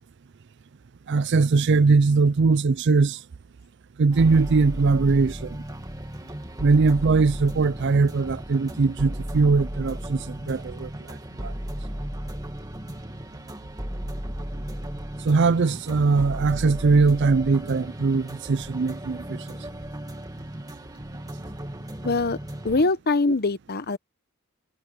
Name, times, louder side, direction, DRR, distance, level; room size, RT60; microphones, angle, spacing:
voice 1, 1.1-3.2 4.0-5.6 6.6-10.9 11.4-11.5 15.2-19.4, right 4 dB, 55° right, 0.4 m, -21 dB
sound 1, 4.1-22.8, equal, 15° right, 2.1 m, -35 dB
voice 2, 22.0-22.4 22.6-24.0, left 3 dB, 45° left, 1.0 m, -23 dB
head